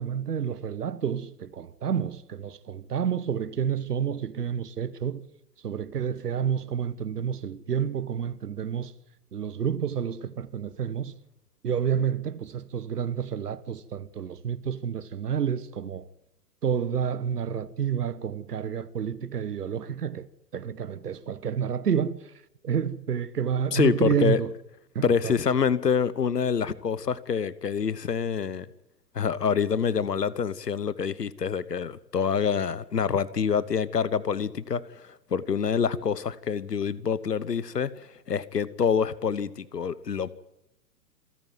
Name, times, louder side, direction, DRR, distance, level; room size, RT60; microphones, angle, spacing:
voice 1, 0.0-5.2 5.6-8.9 9.3-11.1 11.6-16.1 16.6-20.3 20.5-22.3 22.6-24.5 24.9-25.3, right 8 dB, 70° right, 1.2 m, -29 dB
voice 2, 23.7-24.4 25.0-28.7 29.1-40.3, left 6 dB, 80° left, 1.1 m, -26 dB
27.0 x 10.5 x 9.3 m
figure-of-eight pair, 110°, 47 cm